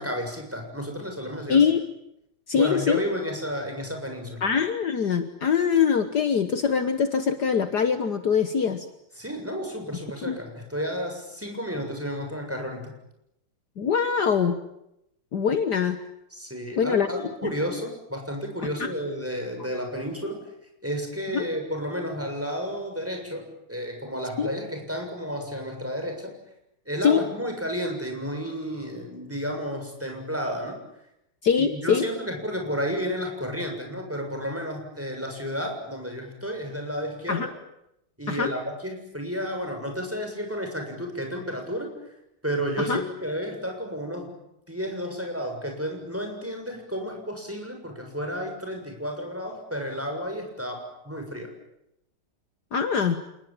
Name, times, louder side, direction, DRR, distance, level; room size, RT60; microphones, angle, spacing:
voice 1, 0.0-1.6 2.5-4.4 9.2-12.9 16.3-20.4 20.8-26.4 26.9-30.8 31.6-37.5 38.2-41.9 42.4-44.3 44.7-51.5, equal, 5° right, 3 dB, 6.9 m, -32 dB
voice 2, 1.5-1.8 2.5-3.0 4.4-8.9 10.2-10.4 13.8-14.6 15.3-16.0 16.8-17.1 17.4-17.5 18.8-18.9 21.3-21.5 24.4-24.5 27.0-27.2 31.4-32.1 37.3-37.5 38.3-38.5 42.8-43.0 52.7-53.2, left 6 dB, 60° left, 9 dB, 1.8 m, -23 dB
29.0 x 20.0 x 9.0 m, 0.82 s
omnidirectional pair, 2.1 m